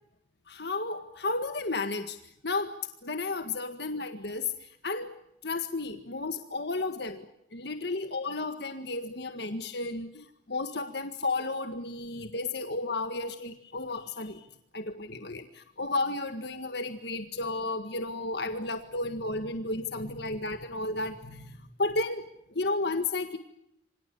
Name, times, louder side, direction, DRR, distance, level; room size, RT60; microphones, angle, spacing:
voice 1, 0.5-2.2 2.4-2.8 3.0-5.1 5.4-7.2 7.5-14.4 14.7-22.3 22.5-23.4, left 3 dB, 60° left, 8 dB, 1.8 m, -33 dB
28.5 x 25.5 x 7.1 m, 0.79 s
head